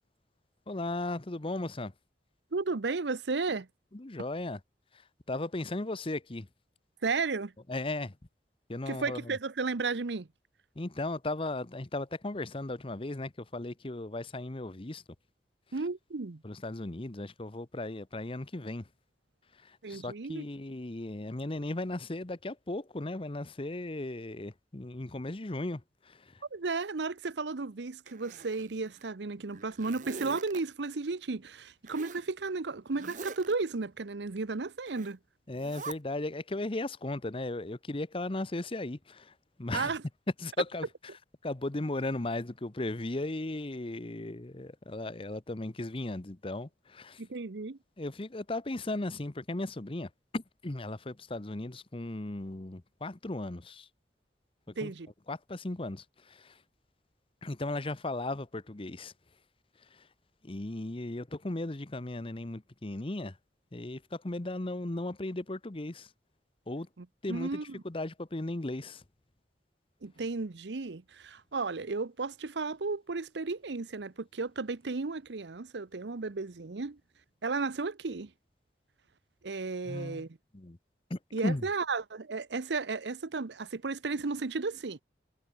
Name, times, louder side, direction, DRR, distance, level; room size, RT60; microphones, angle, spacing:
voice 1, 0.7-1.9 3.9-4.6 4.9-6.5 7.7-8.2 8.7-9.4 10.8-15.0 16.4-18.9 19.5-26.4 35.5-39.9 40.4-41.1 41.4-47.2 48.0-53.9 54.7-54.9 55.3-56.6 57.4-59.1 59.8-60.1 60.4-63.4 63.7-66.1 66.7-66.9 67.2-67.6 67.8-69.0 79.8-80.2 80.5-80.8 81.1-81.7, left 2 dB, 30° left, 0.9 m, -36 dB
voice 2, 2.5-3.7 7.0-7.5 8.9-10.3 15.7-16.4 19.8-20.4 26.5-35.2 39.7-40.0 47.2-47.8 54.8-55.1 67.0-67.8 70.0-77.0 77.4-78.3 79.4-80.3 81.3-85.0, right 4 dB, 80° right, 0.8 m, -34 dB
Zipper (clothing), 28.1-29.0 29.5-30.6 31.9-32.3 32.9-33.5 34.8-35.1 35.5-35.9, right 4 dB, 45° right, 1.2 m, -44 dB
head